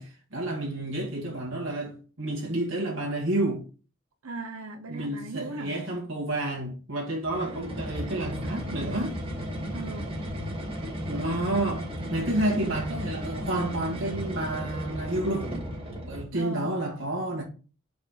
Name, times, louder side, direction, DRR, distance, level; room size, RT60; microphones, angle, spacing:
voice 1, 0.0-3.6 4.9-9.2 11.1-15.5 16.0-17.4, right 1 dB, 60° right, 2.0 m, -30 dB
voice 2, 4.2-5.8 9.7-10.1 16.3-16.7, right 3 dB, 90° right, 1.0 m, -38 dB
sound 1, 7.2-16.3, equal, 25° right, 2.1 m, -34 dB
5.3 x 4.6 x 5.7 m
head